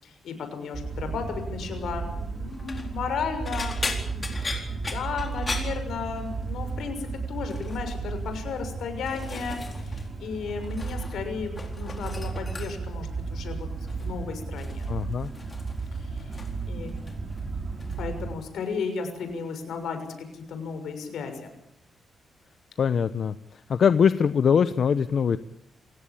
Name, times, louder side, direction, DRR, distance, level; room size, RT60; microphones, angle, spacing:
voice 1, 0.0-3.7 4.0-4.3 4.7-14.9 15.2-15.6 16.1-16.2 16.7-16.9 18.0-21.5, left 5 dB, 80° left, 7 dB, 6.6 m, -34 dB
sound 1, 0.7-18.3, right 4 dB, 35° right, 4.1 m, -34 dB
sound 2, 2.5-2.9 3.4-6.5 6.8-7.1 7.5-8.0 8.6-10.1 10.3-11.2 11.5-13.0 13.9-14.2 14.6-16.6 16.9-17.4 17.8-18.0 19.3-19.4, left 3 dB, 25° left, 4.2 m, -38 dB
voice 2, 14.9-15.3 22.8-23.3 23.7-25.4, left 7 dB, 55° left, 12 dB, 0.9 m, -22 dB
28.5 x 16.5 x 8.7 m, 0.78 s
cardioid pair, 130°, 0 cm